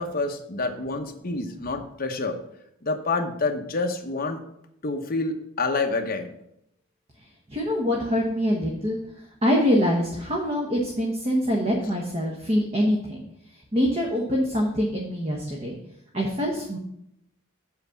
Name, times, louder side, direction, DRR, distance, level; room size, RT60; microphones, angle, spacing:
voice 1, 0.0-2.4 2.8-4.4 4.8-6.3, left 3 dB, 45° left, 4 dB, 0.9 m, -28 dB
voice 2, 7.5-9.0 9.4-13.2 13.7-15.7 16.1-16.8, equal, 30° right, -1 dB, 1.1 m, -24 dB
7.7 x 4.2 x 7.0 m, 0.77 s
head